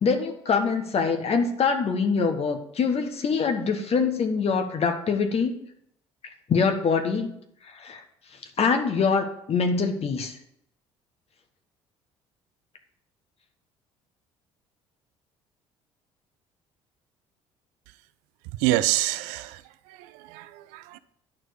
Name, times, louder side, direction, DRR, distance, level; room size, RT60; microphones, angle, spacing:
voice 1, 0.0-5.6 6.5-7.3 7.7-8.0 8.6-10.3, left 5 dB, 45° left, 6 dB, 1.3 m, -24 dB
voice 2, 18.6-19.6 20.0-21.0, right 16 dB, 65° right, 15 dB, 0.5 m, -27 dB
10.5 x 4.7 x 6.6 m, 0.72 s
hypercardioid pair, 55°, 15 cm